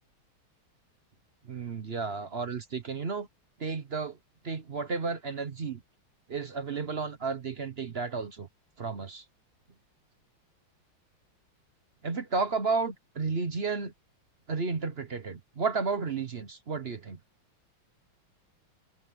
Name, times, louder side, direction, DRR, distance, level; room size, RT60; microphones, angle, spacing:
voice 1, 1.5-3.3 3.6-4.2 4.4-5.8 6.3-8.5 8.8-9.2 12.0-13.9 14.5-17.2, right 4 dB, 40° right, 0.9 m, -32 dB
open air
omnidirectional pair, 2.3 m